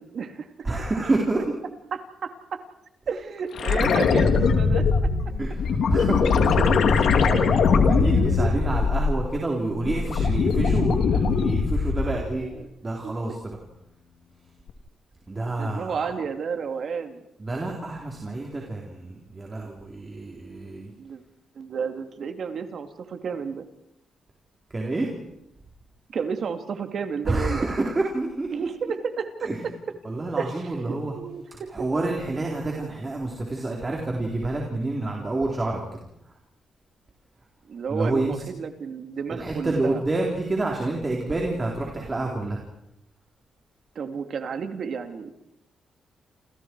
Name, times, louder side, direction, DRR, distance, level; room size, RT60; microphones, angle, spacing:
voice 1, 0.0-0.5 1.9-2.6 3.1-5.1 6.6-6.7 7.2-7.5 8.1-8.4 8.7-8.8 12.4-12.7 13.0-13.1 15.6-17.2 21.0-21.2 21.5-23.7 26.1-27.7 28.5-29.5 30.4-30.6 31.2-31.7 37.7-40.0 43.9-45.3, right 6 dB, 60° right, 7 dB, 2.4 m, -32 dB
voice 2, 0.6-1.4 5.4-6.9 7.9-12.5 12.8-13.6 15.3-16.1 17.4-20.9 24.7-25.1 27.2-28.7 29.4-29.7 30.0-31.1 31.5-35.8 37.9-38.4 39.3-42.6, right 2 dB, 25° right, -1 dB, 4.1 m, -28 dB
sound 1, 3.6-9.4 9.7-12.3 14.7-14.8, left 5 dB, 70° left, 3.1 m, -21 dB
29.0 x 28.5 x 4.8 m, 0.81 s
cardioid pair, 110°, 0 cm